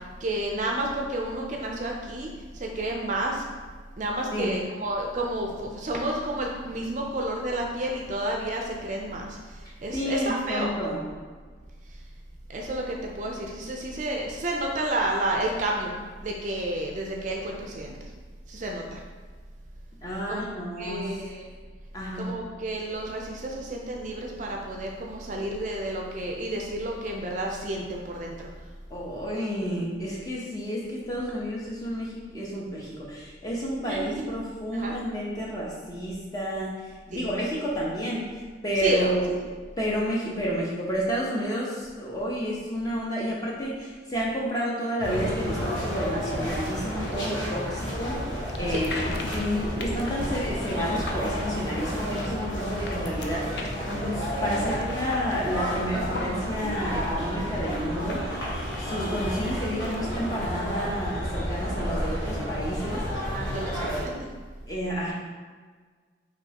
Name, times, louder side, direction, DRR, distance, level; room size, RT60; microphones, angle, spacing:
voice 1, 0.2-2.3 2.5-3.4 4.0-9.4 9.8-10.7 12.5-15.9 16.2-18.0 18.5-19.0 20.3-20.4 20.8-21.5 22.2-28.5 33.9-34.3 34.7-34.9 37.1-37.2 38.8-39.1 48.7-48.8 63.1-64.3, right 1 dB, 40° right, 0 dB, 0.4 m, -30 dB
voice 2, 9.9-11.0 20.0-21.2 21.9-22.4 28.9-39.3 39.8-58.4 58.8-63.1 64.7-65.1, equal, 20° left, -5 dB, 0.8 m, -30 dB
sound 1, 45.0-64.1, equal, 90° left, 1.3 m, -31 dB
sound 2, 48.3-63.0, left 1 dB, 60° left, 0.4 m, -40 dB
5.2 x 3.1 x 2.8 m, 1.5 s
head